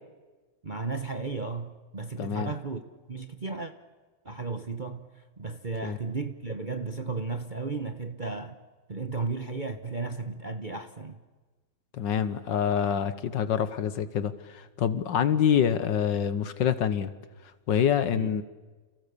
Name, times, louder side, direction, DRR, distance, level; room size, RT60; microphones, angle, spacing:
voice 1, 0.6-2.8 3.1-3.7 4.2-8.5 8.9-11.2 18.1-18.3, right 3 dB, 30° right, 1.0 m, -34 dB
voice 2, 2.2-2.5 5.8-6.0 11.9-17.1 17.7-18.4, left 8 dB, 65° left, 1.7 m, -26 dB
29.5 x 28.0 x 6.9 m
omnidirectional pair, 2.2 m